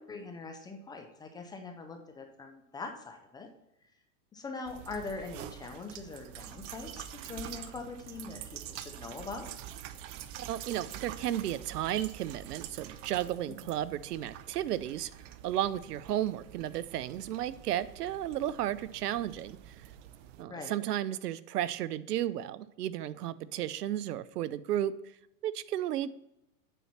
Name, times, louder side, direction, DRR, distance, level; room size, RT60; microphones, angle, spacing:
voice 1, 0.0-3.5 4.3-6.9 7.2-9.5 13.5-13.7 20.5-20.7, left 3 dB, 10° left, 4 dB, 0.3 m, -42 dB
sound 1, 4.6-20.4, right 10 dB, 50° right, 0.7 m, -46 dB
voice 2, 10.4-15.1 15.4-19.7 20.4-24.9 25.4-26.1, right 12 dB, 85° right, 17 dB, 0.6 m, -33 dB
9.2 x 4.2 x 5.8 m, 0.84 s
hypercardioid pair, 120°, 45 cm